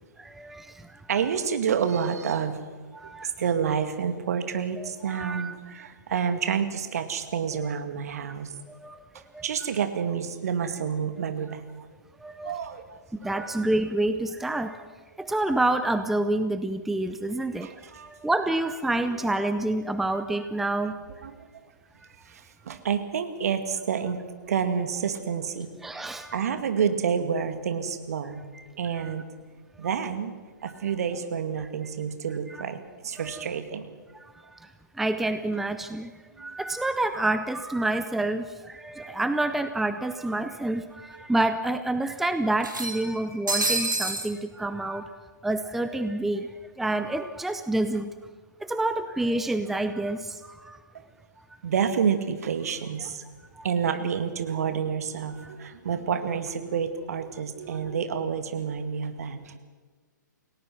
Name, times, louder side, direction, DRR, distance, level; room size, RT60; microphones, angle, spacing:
voice 1, 0.2-1.0 2.9-3.3 4.8-5.5 8.7-9.0 9.3-9.4 12.2-12.6 13.2-14.8 15.2-17.7 18.1-20.9 25.8-26.5 28.5-28.6 29.0-29.1 32.5-32.6 33.2-33.5 34.2-45.1 45.4-48.1 48.6-50.8 51.4-51.5 53.5-53.7 55.4-55.5, right 2 dB, ahead, 9 dB, 0.6 m, -28 dB
voice 2, 1.1-2.6 3.2-8.5 9.4-11.7 12.4-13.5 17.6-18.1 18.9-19.1 21.2-21.5 22.2-25.7 26.0-28.4 28.7-29.3 29.8-30.3 30.6-33.9 36.4-36.6 51.6-53.2 53.6-59.6, right 7 dB, 50° right, 8 dB, 2.2 m, -29 dB
sound 1, 39.2-39.3 39.6-39.7 40.8-40.9 41.2-41.3 42.6-44.3, right 2 dB, 85° right, 3.2 m, -28 dB
29.0 x 18.0 x 6.1 m, 1.5 s
figure-of-eight pair, 120°, 10 cm